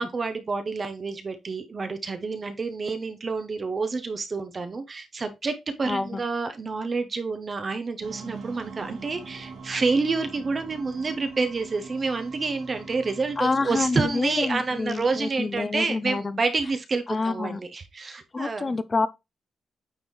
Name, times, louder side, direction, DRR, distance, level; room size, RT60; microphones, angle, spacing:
voice 1, 0.0-18.8, right 4 dB, 30° right, 0.7 m, -28 dB
voice 2, 5.9-6.2 13.4-16.4 17.1-17.6 18.3-19.1, left 3 dB, 25° left, 0.4 m, -27 dB
sound 1, 8.0-16.1, right 4 dB, 85° right, 2.3 m, -43 dB
8.8 x 4.0 x 3.1 m
wide cardioid pair, 175°, 0 cm